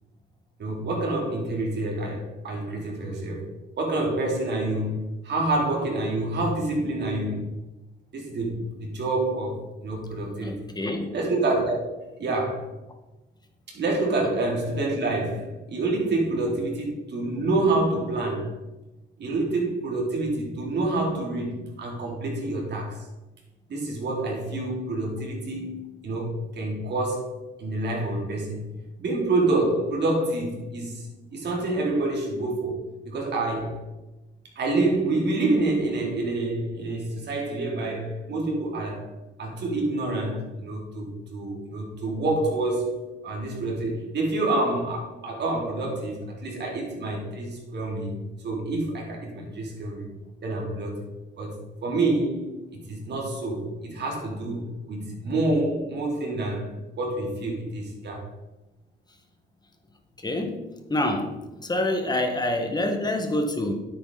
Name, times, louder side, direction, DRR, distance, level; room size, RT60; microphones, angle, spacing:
voice 1, 0.6-3.5 3.8-7.4 8.1-10.6 11.1-12.7 13.7-18.6 19.2-23.1 23.7-28.6 29.0-33.8 34.6-39.1 39.4-48.2 48.4-50.1 50.4-51.0 51.4-58.3, right 2 dB, 60° right, -1 dB, 3.5 m, -27 dB
voice 2, 10.4-11.1 14.2-14.3 60.2-60.6 60.9-63.7, left 1 dB, 20° left, 4 dB, 1.9 m, -27 dB
9.8 x 8.6 x 4.2 m, 1.0 s
cardioid pair, 90°, 20 cm